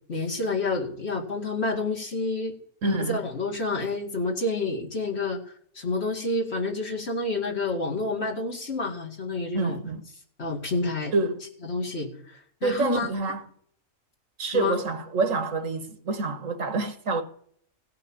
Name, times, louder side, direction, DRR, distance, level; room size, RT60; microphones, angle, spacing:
voice 1, 0.1-2.6 2.8-5.4 5.7-9.8 10.4-11.1 11.6-13.1 14.5-14.8, left 2 dB, 55° left, 2.3 m, -29 dB
voice 2, 2.8-3.2 9.5-10.0 11.1-11.4 12.6-13.4 14.4-17.2, right 3 dB, 75° right, 1.8 m, -27 dB
16.5 x 5.8 x 8.7 m
omnidirectional pair, 1.4 m